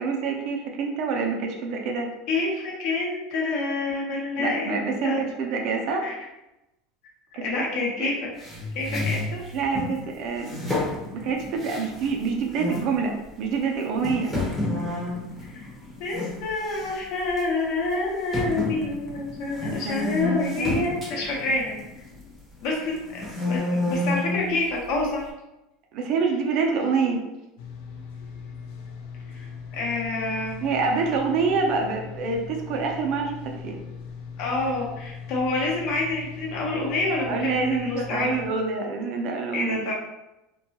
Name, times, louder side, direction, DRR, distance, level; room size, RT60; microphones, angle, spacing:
voice 1, 0.0-2.1 4.4-6.1 7.3-7.6 8.0-8.1 9.5-10.6 11.1-14.4 19.7-20.8 25.9-27.2 30.6-33.8 37.3-39.8, right 4 dB, 45° right, 2 dB, 0.4 m, -26 dB
voice 2, 2.3-5.3 6.0-6.1 7.4-8.3 8.7-9.4 15.5-15.7 16.0-21.7 22.6-25.3 29.3-30.6 34.4-38.3 39.5-40.1, left 2 dB, 50° left, -2 dB, 0.8 m, -28 dB
sound 1, 8.4-9.9 10.4-12.2 12.5-12.9 13.5-13.6 14.0-16.4 16.7-17.0 17.4-17.5 18.3-22.3 22.8-24.5, left 2 dB, ahead, 0.7 m, -30 dB
sound 2, 27.6-38.5, left 6 dB, 70° left, 0.4 m, -39 dB
2.8 x 2.2 x 2.8 m, 0.95 s
cardioid pair, 160°, 0 cm